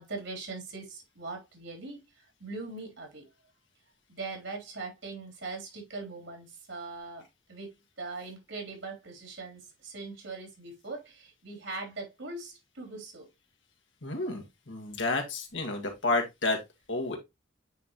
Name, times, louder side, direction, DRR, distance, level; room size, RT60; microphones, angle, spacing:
voice 1, 0.0-3.3 4.1-7.7 8.0-13.3, right 3 dB, 70° right, 3.4 m, -41 dB
voice 2, 14.0-16.6 16.9-17.2, left 2 dB, 70° left, 2.0 m, -30 dB
9.1 x 4.3 x 3.0 m
head